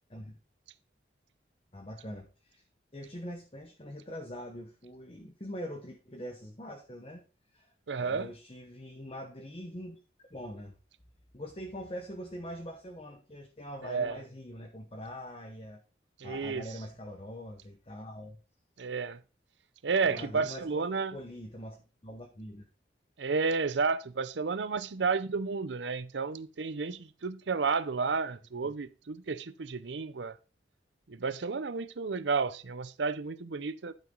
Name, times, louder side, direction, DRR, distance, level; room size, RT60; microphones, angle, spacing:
voice 1, 1.7-2.6 2.9-7.2 7.5-10.0 10.3-10.8 11.3-15.8 16.2-18.4 20.0-20.8 21.1-21.8 22.0-22.7 28.6-28.7, equal, 30° left, 1.1 m, -43 dB
voice 2, 7.9-8.3 13.8-14.2 16.2-16.7 18.8-19.2 19.8-21.2 23.2-30.4 31.1-33.9, right 4 dB, 75° right, 0.6 m, -31 dB
11.0 x 6.1 x 3.9 m
head